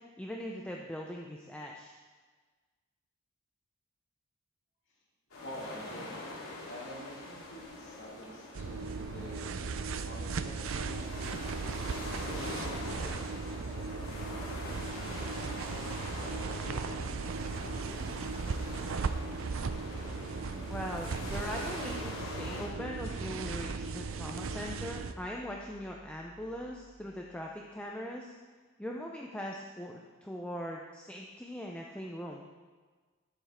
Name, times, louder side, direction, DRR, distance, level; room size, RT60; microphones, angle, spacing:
voice 1, 0.2-1.9 20.7-28.3 28.8-32.5, equal, 5° left, -1 dB, 0.5 m, -41 dB
sound 1, 5.3-22.7, left 2 dB, 80° left, 2.4 m, -44 dB
voice 2, 5.4-6.1 6.7-11.5 12.2-14.5 15.3-18.9, equal, 60° left, -5 dB, 2.8 m, -49 dB
sound 2, 8.5-25.1, right 4 dB, 70° right, 0.5 m, -37 dB
sound 3, 23.0-27.7, equal, 25° left, 2.8 m, -52 dB
12.5 x 7.0 x 4.3 m, 1.4 s
head